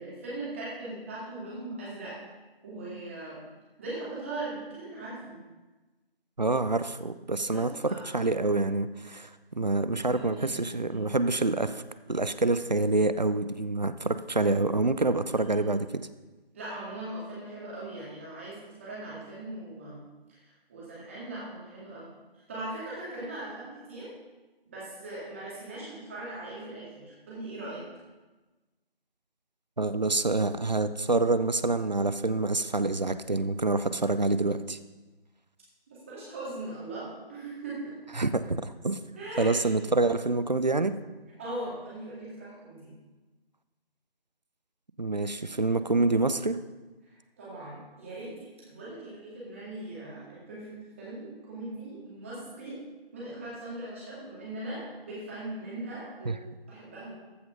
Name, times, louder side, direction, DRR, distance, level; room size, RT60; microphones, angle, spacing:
voice 1, 0.0-2.2 2.6-3.4 3.8-5.4 7.5-8.1 10.1-11.0 15.3-15.7 16.5-20.0 20.4-24.1 24.7-27.8 35.9-38.0 39.2-39.7 41.4-42.9 47.0-52.8 53.1-57.1, right 2 dB, 15° right, -7 dB, 2.3 m, -40 dB
voice 2, 6.4-11.8 12.1-16.1 29.8-34.8 38.2-39.0 39.4-41.0 45.0-46.6 56.3-56.4, right 2 dB, 45° right, 12 dB, 0.5 m, -27 dB
14.5 x 5.9 x 5.4 m, 1.2 s
figure-of-eight pair, 165°, 30 cm